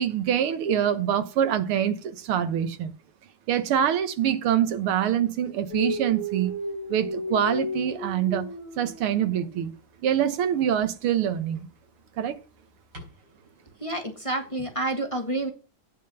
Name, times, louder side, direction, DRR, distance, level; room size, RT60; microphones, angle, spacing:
voice 1, 0.0-2.9 3.5-6.5 6.9-8.5 8.8-9.7 10.0-11.7 12.2-12.4, right 9 dB, 85° right, 2.0 m, -25 dB
Dog, 5.7-9.7 10.7-10.9 12.9-13.1, left 1 dB, 50° right, 4.9 m, -34 dB
voice 2, 13.8-15.5, right 2 dB, 15° left, 1.4 m, -29 dB
9.2 x 5.9 x 6.8 m
omnidirectional pair, 2.4 m